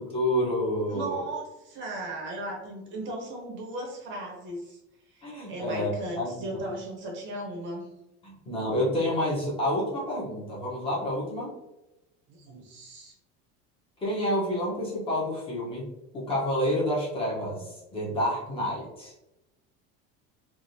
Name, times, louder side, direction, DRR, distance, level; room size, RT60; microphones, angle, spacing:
voice 1, 0.0-1.2 5.2-5.9 6.2-6.3 8.2-11.5 14.0-15.9 16.1-19.1, left 1 dB, 20° left, -5 dB, 0.8 m, -29 dB
voice 2, 0.9-4.8 5.1-7.9 12.3-13.1, right 1 dB, 40° right, 0 dB, 0.7 m, -37 dB
3.3 x 2.4 x 2.6 m, 0.95 s
cardioid pair, 170°, 31 cm